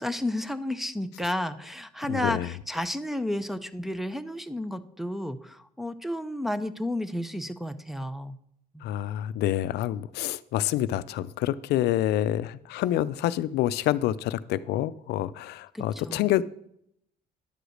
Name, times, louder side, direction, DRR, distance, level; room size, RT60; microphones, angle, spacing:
voice 1, 0.0-8.4 8.7-8.8 15.7-16.3, left 1 dB, ahead, 8 dB, 0.6 m, -32 dB
voice 2, 2.1-2.5 8.8-16.7, left 13 dB, 75° left, 16 dB, 0.4 m, -27 dB
10.5 x 5.0 x 6.4 m, 0.72 s
cardioid pair, 110°, 17 cm